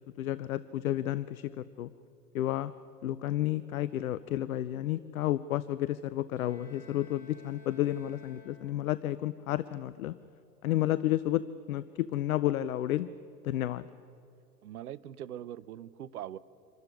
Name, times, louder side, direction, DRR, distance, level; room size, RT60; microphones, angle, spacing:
voice 1, 0.2-1.9 2.3-2.7 3.0-10.2 10.6-11.4 11.7-13.1 13.4-13.9, left 13 dB, 60° left, 16 dB, 0.7 m, -31 dB
Bowed string instrument, 6.3-9.1, left 2 dB, 75° left, 6.2 m, -55 dB
voice 2, 14.6-16.4, right 11 dB, 65° right, 18 dB, 0.8 m, -42 dB
26.0 x 13.5 x 9.8 m, 2.6 s
figure-of-eight pair, 95°, 48 cm